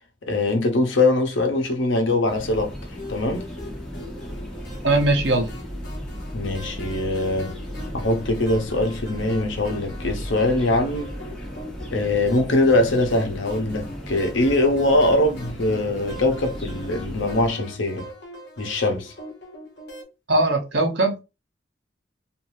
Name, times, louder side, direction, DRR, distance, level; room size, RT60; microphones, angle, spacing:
voice 1, 0.3-2.7 3.1-3.4 6.3-7.6 7.9-11.1 11.9-18.1 18.6-19.1, left 2 dB, 90° left, 0.8 m, -22 dB
sound 1, 2.3-17.5, equal, 5° left, 0.9 m, -35 dB
sound 2, 2.9-20.0, equal, 60° left, 1.0 m, -43 dB
voice 2, 4.8-5.5 20.3-21.2, right 2 dB, 65° right, 0.8 m, -20 dB
3.1 x 2.6 x 2.6 m
head